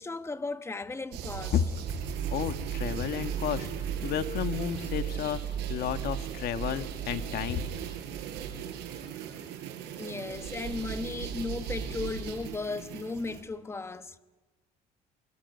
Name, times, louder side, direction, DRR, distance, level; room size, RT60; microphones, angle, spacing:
voice 1, 0.0-1.5 9.9-14.2, left 3 dB, 15° left, 1.1 m, -36 dB
sound 1, 1.1-13.4, right 8 dB, 90° right, 6.4 m, -39 dB
sound 2, 1.8-9.1, right 9 dB, 55° right, 1.4 m, -37 dB
voice 2, 2.3-3.7 4.0-5.4 5.7-7.7, left 10 dB, 70° left, 1.6 m, -31 dB
28.5 x 20.5 x 9.3 m
cardioid pair, 110°, 17 cm